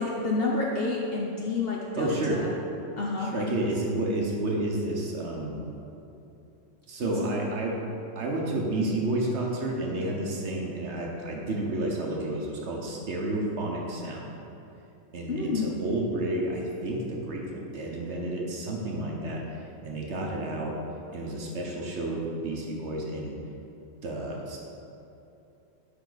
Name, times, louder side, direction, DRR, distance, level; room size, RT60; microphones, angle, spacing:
voice 1, 0.0-2.5 3.0-3.3 7.0-7.3 15.3-15.7, left 3 dB, 55° left, -3 dB, 0.7 m, -29 dB
voice 2, 2.0-2.4 3.2-5.9 6.9-7.7 8.1-14.3 15.1-20.8 21.1-23.4 24.0-24.6, right 1 dB, 55° right, -1 dB, 1.0 m, -31 dB
9.7 x 3.7 x 4.0 m, 2.8 s
omnidirectional pair, 1.5 m